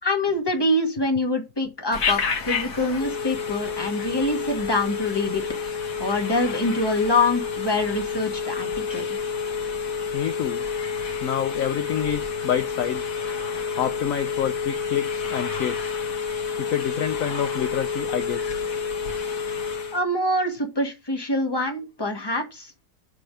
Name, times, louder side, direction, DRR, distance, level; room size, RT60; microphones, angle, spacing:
voice 1, 0.0-5.4 6.0-9.0 19.9-22.7, left 2 dB, 15° left, 1.5 m, -25 dB
Telephone, 1.9-20.0, left 5 dB, 50° left, 1.6 m, -29 dB
voice 2, 10.1-10.7 11.2-13.1 13.8-16.0 16.6-18.6, left 10 dB, 70° left, 0.8 m, -28 dB
8.3 x 3.4 x 6.3 m
omnidirectional pair, 1.9 m